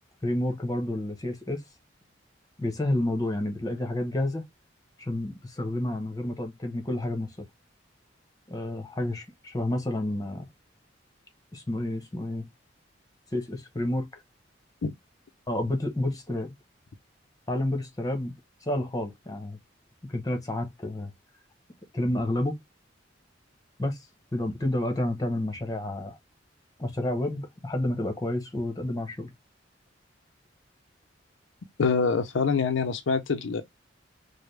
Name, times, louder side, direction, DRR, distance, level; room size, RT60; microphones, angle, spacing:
voice 1, 0.2-1.6 2.6-4.4 5.0-7.3 8.5-10.5 11.5-12.5 13.3-14.0 15.5-16.5 17.5-18.3 18.7-19.6 20.1-21.1 21.9-22.5 23.8-24.0 24.3-26.2 26.8-29.3, left 1 dB, 20° left, 1.0 m, -30 dB
voice 2, 31.8-33.6, left 5 dB, 80° left, 0.5 m, -25 dB
4.8 x 2.1 x 3.2 m
head